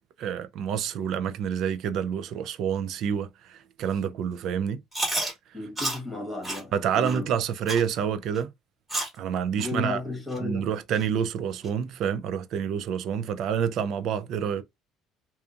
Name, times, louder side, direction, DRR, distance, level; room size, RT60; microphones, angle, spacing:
voice 1, 0.2-4.8 6.7-8.5 9.2-10.0 10.4-14.6, right 8 dB, 55° right, 0.4 m, -28 dB
Chewing mastication, 4.9-5.3 5.8-6.0 6.4-6.6 7.0-7.2 7.7-7.9 8.4-8.5 8.9-9.2 9.6-9.7 10.3-10.4 11.0-11.1 11.6-11.7, right 1 dB, 15° right, 1.4 m, -30 dB
voice 2, 5.5-7.3 9.6-10.7, left 2 dB, 5° left, 1.2 m, -34 dB
2.7 x 2.3 x 2.4 m
cardioid pair, 135°, 0 cm